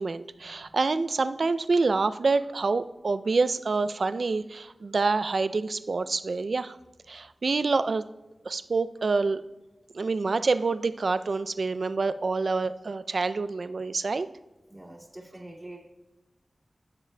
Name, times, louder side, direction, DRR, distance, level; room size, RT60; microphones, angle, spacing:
voice 1, 0.0-6.8 7.1-8.0 8.5-9.4 9.9-14.3, right 3 dB, 75° right, 12 dB, 0.3 m, -27 dB
voice 2, 14.7-15.8, right 1 dB, 25° right, -4 dB, 2.2 m, -45 dB
14.5 x 7.3 x 2.2 m, 0.99 s
wide cardioid pair, 60°, 0 cm